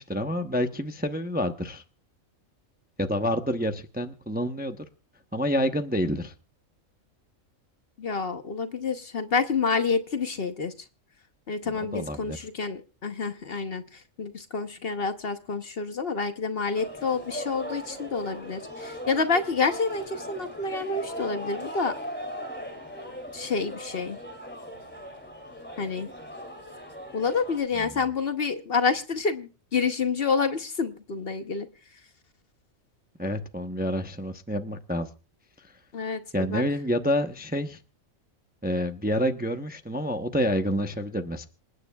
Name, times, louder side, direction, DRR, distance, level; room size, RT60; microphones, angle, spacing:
voice 1, 0.0-1.8 3.0-4.8 5.3-6.3 11.9-12.4 33.2-35.1 36.3-37.8 38.6-41.5, equal, 10° right, 6 dB, 0.7 m, -28 dB
voice 2, 8.0-10.7 11.5-21.9 23.3-24.2 25.8-26.1 27.1-31.7 35.9-36.6, left 4 dB, 50° left, 8 dB, 1.1 m, -28 dB
sound 1, 16.7-27.6, equal, 10° left, 2.6 m, -39 dB
27.0 x 9.5 x 2.3 m, 0.34 s
omnidirectional pair, 1.4 m